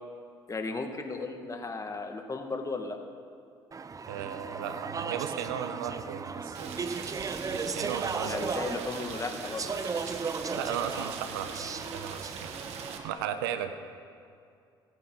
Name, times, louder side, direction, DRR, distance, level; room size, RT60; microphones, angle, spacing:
voice 1, 0.5-3.0 8.2-10.2, left 3 dB, 30° left, 4 dB, 2.0 m, -36 dB
Speech / Chatter, 3.7-13.1, right 5 dB, 30° right, 0.7 m, -36 dB
voice 2, 4.1-6.8 7.5-8.5 10.5-12.6 13.0-13.7, right 9 dB, 85° right, 9 dB, 0.9 m, -36 dB
Rain, 6.5-13.0, right 6 dB, 65° right, 1.6 m, -42 dB
27.0 x 9.3 x 4.0 m, 2.4 s
hypercardioid pair, 60°, 12 cm